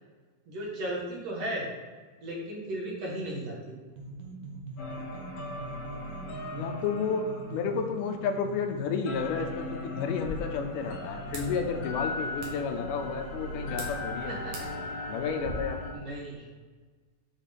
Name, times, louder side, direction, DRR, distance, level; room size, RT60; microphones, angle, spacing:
voice 1, 0.5-1.7 2.2-3.7 14.3-14.5 15.9-16.5, right 1 dB, 55° right, -3 dB, 2.5 m, -35 dB
sound 1, 3.9-15.4, right 1 dB, 90° right, 2.8 m, -44 dB
sound 2, 4.8-8.7 9.0-15.9, left 1 dB, 65° left, 1.7 m, -39 dB
voice 2, 6.5-14.4 15.1-15.8, left 6 dB, 80° left, 5 dB, 2.3 m, -31 dB
sound 3, 10.0-15.5, equal, 75° right, 3.0 m, -45 dB
7.5 x 4.9 x 5.3 m, 1.4 s
omnidirectional pair, 3.7 m